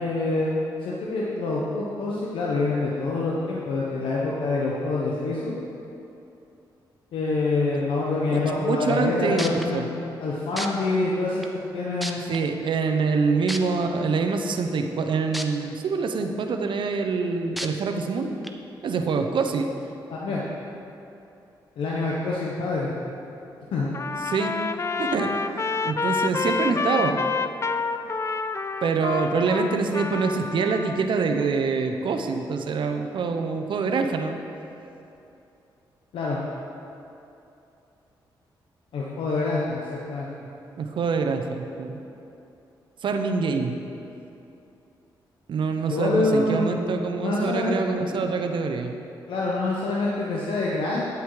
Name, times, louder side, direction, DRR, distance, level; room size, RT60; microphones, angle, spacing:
voice 1, 0.0-5.5 7.1-11.4 11.7-12.2 20.1-20.4 21.8-22.9 23.7-23.9 36.1-36.4 38.9-40.3 45.9-46.7 47.1-48.1 49.3-51.1, left 3 dB, 85° left, -4 dB, 1.1 m, -26 dB
voice 2, 8.3-9.9 12.3-18.3 18.8-19.7 24.2-24.6 25.0-25.3 25.8-27.2 28.8-34.4 40.8-42.0 43.0-43.8 45.5-48.9, right 4 dB, 70° right, 5 dB, 0.9 m, -25 dB
sound 1, 9.4-9.6 10.6-10.7 11.4-11.5 12.0-12.4 13.5-13.6 15.3-15.4 16.0-16.1 17.6-17.7 18.4-18.5, equal, ahead, 0.8 m, -31 dB
Trumpet, 23.9-31.0, left 4 dB, 35° left, 0.5 m, -28 dB
10.0 x 8.1 x 4.8 m, 2.8 s
cardioid pair, 75°, 9 cm